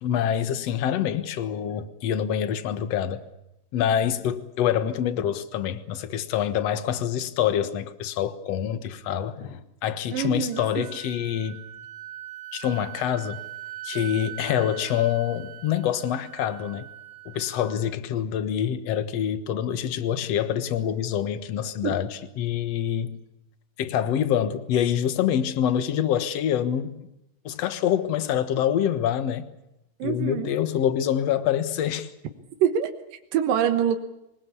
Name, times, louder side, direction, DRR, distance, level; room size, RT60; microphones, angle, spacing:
voice 1, 0.0-3.2 3.7-11.6 12.5-13.4 13.8-16.9 17.3-23.2 23.8-27.1 27.4-29.5 30.0-32.1, left 9 dB, 60° left, 2.2 m, -26 dB
voice 2, 10.1-10.6 21.8-22.0 30.0-30.5 32.6-34.0, right 9 dB, 90° right, 3.0 m, -25 dB
Wind instrument woodwind instrument, 10.2-17.9, right 13 dB, 70° right, 2.6 m, -41 dB
25.0 x 19.5 x 8.5 m
omnidirectional pair, 3.8 m